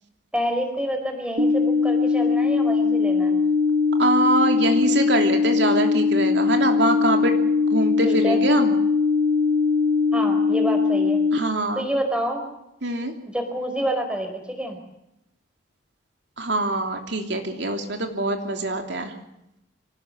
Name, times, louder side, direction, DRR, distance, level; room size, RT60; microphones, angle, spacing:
voice 1, 0.3-3.4 8.0-8.4 10.1-11.2 11.7-12.5 13.3-14.8, equal, 5° right, 5 dB, 4.8 m, -28 dB
sound 1, 1.4-11.4, left 4 dB, 40° right, 1.4 m, -20 dB
voice 2, 4.0-7.4 7.7-8.7 11.3-11.8 12.8-13.1 16.4-19.1, right 2 dB, 60° right, 4 dB, 3.1 m, -24 dB
25.5 x 18.5 x 8.0 m, 0.85 s
head